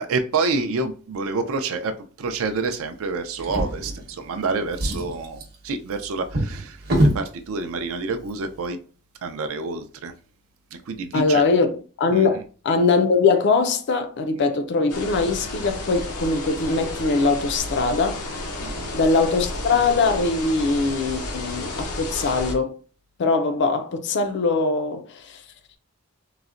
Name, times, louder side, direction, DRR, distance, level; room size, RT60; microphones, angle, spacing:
voice 1, 0.0-1.9 2.2-6.8 7.1-8.8 9.2-10.1 10.7-11.4 12.1-12.3 18.6-18.9, right 4 dB, 65° right, 0.4 m, -28 dB
Drawer open or close, 3.4-4.4 4.7-7.3 8.2-8.3 8.7-8.8, right 1 dB, 50° right, 0.8 m, -25 dB
voice 2, 11.1-18.2 18.9-22.7 23.2-25.4, left 4 dB, 50° left, 0.4 m, -22 dB
sound 1, 14.9-22.6, left 2 dB, 85° left, 0.7 m, -32 dB
3.9 x 2.1 x 2.4 m
head